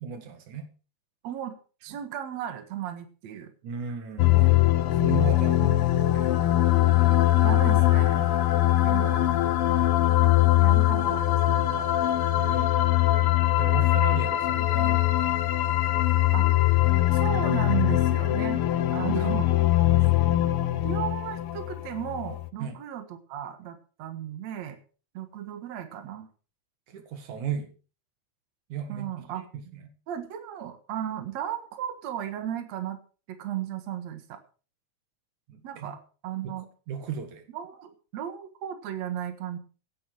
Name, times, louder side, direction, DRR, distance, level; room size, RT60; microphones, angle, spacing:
voice 1, 0.0-0.7 3.6-6.4 8.5-8.9 12.4-12.8 13.6-15.6 22.6-22.8 26.9-27.7 28.7-29.9 35.5-35.9 36.4-36.6 36.9-37.5, right 7 dB, 85° right, 7 dB, 3.3 m, -36 dB
voice 2, 1.2-1.6 1.8-3.5 5.6-5.9 7.0-8.3 8.8-9.4 10.5-11.9 16.3-16.5 17.1-18.6 18.9-19.5 20.8-24.8 25.1-26.3 28.9-29.4 30.1-33.0 33.3-34.4 35.6-36.7 37.5-39.6, right 10 dB, 70° right, 7 dB, 2.8 m, -35 dB
sound 1, 4.2-22.5, left 15 dB, 70° left, 1.4 m, -22 dB
16.5 x 10.0 x 4.7 m, 0.37 s
omnidirectional pair, 3.3 m